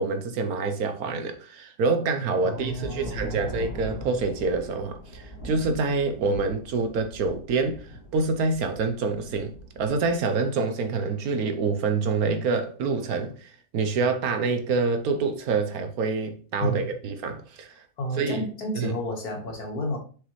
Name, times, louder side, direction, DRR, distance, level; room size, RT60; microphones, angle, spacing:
voice 1, 0.0-7.8 8.1-17.7 18.2-18.4 18.7-18.9, right 4 dB, 65° right, 1.3 m, -26 dB
voice 2, 2.4-3.5 16.6-16.9 18.0-20.0, equal, 65° left, 1.9 m, -31 dB
sound 1, 2.6-10.2, equal, 15° right, 3.3 m, -41 dB
6.5 x 4.9 x 3.1 m
omnidirectional pair, 1.7 m